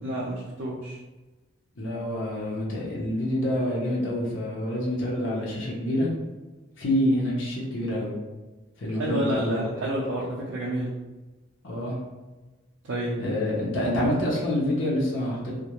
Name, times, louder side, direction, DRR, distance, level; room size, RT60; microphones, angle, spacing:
voice 1, 0.0-1.0 9.0-10.9 12.9-13.2, right 1 dB, 85° right, -5 dB, 0.5 m, -29 dB
voice 2, 1.8-6.1 6.8-8.1 8.8-9.6 11.6-12.0 13.2-15.5, left 1 dB, 80° left, -5 dB, 0.7 m, -27 dB
2.4 x 2.1 x 2.9 m, 1.2 s
head